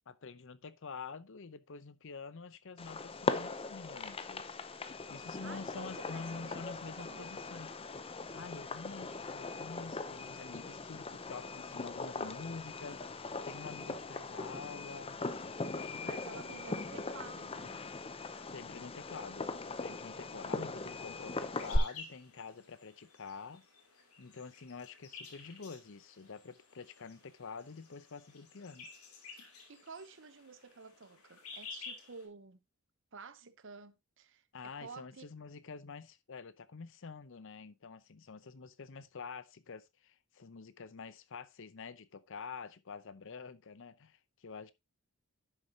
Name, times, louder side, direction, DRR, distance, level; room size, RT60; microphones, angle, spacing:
voice 1, 0.1-4.6 5.1-7.8 8.3-15.2 15.7-16.6 18.5-23.6 24.2-28.9 34.5-44.7, left 4 dB, 60° left, 0.7 m, -47 dB
Fireworks, 2.8-21.8, left 3 dB, 25° left, 0.6 m, -40 dB
voice 2, 5.4-7.4 16.0-17.8 29.7-32.6 33.1-35.2, right 5 dB, 60° right, 0.8 m, -51 dB
sound 1, 21.5-32.3, left 5 dB, 85° left, 2.9 m, -52 dB
11.0 x 6.7 x 2.8 m
head